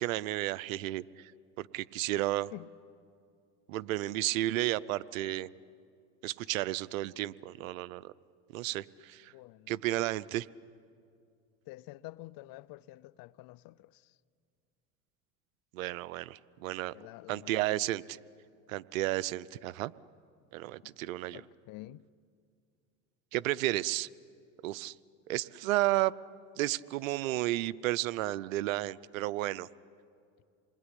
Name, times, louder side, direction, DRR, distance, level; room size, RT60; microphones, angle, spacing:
voice 1, 0.0-1.3 1.6-2.5 3.7-5.5 6.2-8.1 8.5-9.3 9.7-10.5 15.7-16.9 17.3-18.2 18.7-19.9 20.5-21.4 23.3-24.1 24.6-24.9 25.3-26.1 26.6-29.7, right 16 dB, 85° right, 0.7 m, -32 dB
voice 2, 9.3-9.7 11.7-14.2 16.9-17.9 20.8-20.9 21.3-22.0, left 18 dB, 60° left, 0.7 m, -49 dB
27.5 x 21.0 x 9.9 m
supercardioid pair, 95°, 39 cm